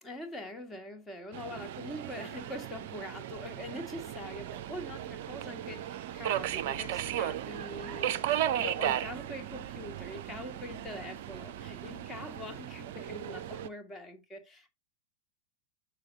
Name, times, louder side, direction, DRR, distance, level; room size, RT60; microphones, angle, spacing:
voice 1, 0.0-14.8, left 1 dB, 15° left, 1.8 m, -43 dB
Subway metro underground, 1.3-13.7, right 11 dB, 50° right, 0.4 m, -36 dB
6.8 x 6.4 x 3.4 m
figure-of-eight pair, 90°, 0 cm